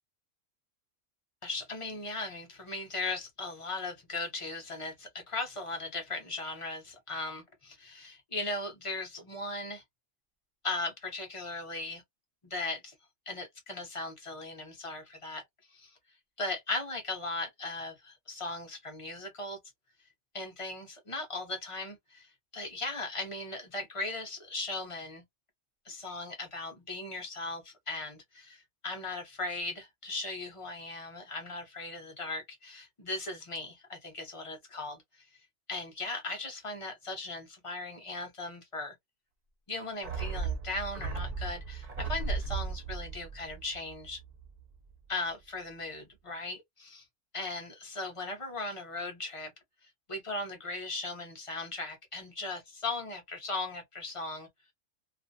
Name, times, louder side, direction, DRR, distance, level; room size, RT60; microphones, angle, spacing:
voice 1, 1.4-9.8 10.6-12.0 12.4-12.9 13.3-15.4 15.7-16.0 16.4-19.6 20.3-25.2 25.8-35.3 35.7-38.9 39.7-44.2 45.1-47.0 47.3-49.5 49.8-54.5, left 2 dB, 30° left, 0.7 m, -38 dB
sound 1, 40.0-44.6 44.9-45.0, right 4 dB, 75° right, 0.3 m, -36 dB
2.5 x 2.1 x 2.6 m
omnidirectional pair, 1.4 m